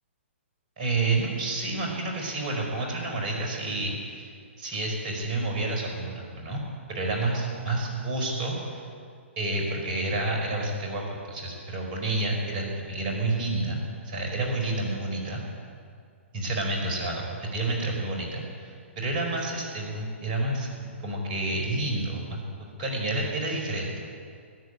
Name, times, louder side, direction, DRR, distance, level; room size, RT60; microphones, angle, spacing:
voice 1, 0.8-4.3 4.6-6.6 6.9-8.8 9.4-15.4 16.3-23.9, right 2 dB, 40° right, 0 dB, 4.9 m, -29 dB
14.0 x 11.0 x 9.0 m, 2.2 s
figure-of-eight pair, 125°, 7 cm